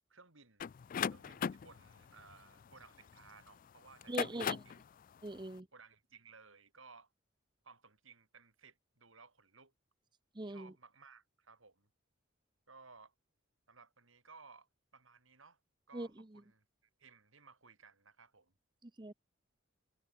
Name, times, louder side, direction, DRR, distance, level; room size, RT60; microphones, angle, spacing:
voice 1, 0.1-0.6 1.1-4.8 5.7-7.1 7.6-9.7 10.4-11.9 12.7-13.1 13.7-15.6 15.9-16.6 17.0-18.5, right 4 dB, 75° right, 5.9 m, -60 dB
sound 1, 0.6-3.3 3.9-4.8, left 7 dB, 40° left, 0.3 m, -38 dB
voice 2, 4.1-4.6 5.2-5.7 10.3-10.7 15.9-16.1 18.8-19.1, right 2 dB, 20° right, 0.8 m, -41 dB
head